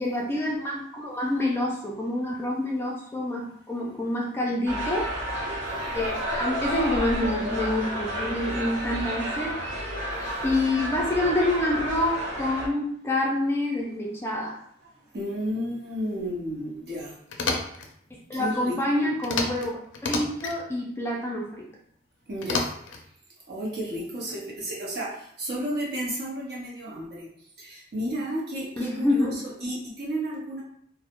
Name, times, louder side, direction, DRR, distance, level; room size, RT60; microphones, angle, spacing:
voice 1, 0.0-5.1 5.9-9.6 10.4-14.5 18.3-21.7 28.8-29.4, left 1 dB, 15° left, -3 dB, 0.3 m, -27 dB
sound 1, 4.7-12.7, equal, 90° right, 0.8 m, -31 dB
voice 2, 5.1-5.5 5.9-6.2 14.3-17.5 18.3-19.1 22.3-22.7 23.5-30.6, equal, 60° right, -4 dB, 0.8 m, -33 dB
sound 2, 17.3-17.9 19.2-19.7 19.9-20.6 22.4-23.0, left 3 dB, 90° left, 0.4 m, -29 dB
2.3 x 2.0 x 2.9 m, 0.67 s
head